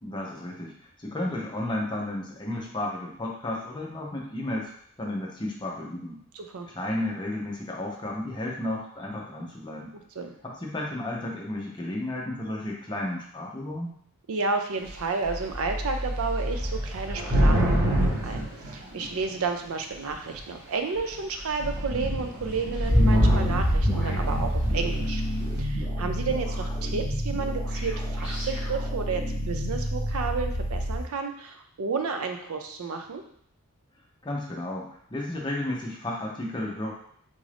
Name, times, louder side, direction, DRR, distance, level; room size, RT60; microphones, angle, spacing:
voice 1, 0.0-4.7 5.0-6.2 6.7-9.9 10.4-13.9 34.2-36.9, left 1 dB, 20° left, -1 dB, 0.6 m, -33 dB
voice 2, 6.3-6.7 10.2-10.3 14.3-25.2 25.6-33.2, right 4 dB, 70° right, 6 dB, 0.5 m, -32 dB
Thunder / Rain, 14.8-15.0 15.2-19.4 20.1-20.5 21.0-21.1 21.4-25.1, equal, 45° right, 1.0 m, -27 dB
sound 1, 22.9-31.0, equal, 10° right, 1.1 m, -27 dB
3.7 x 2.5 x 3.3 m, 0.64 s
head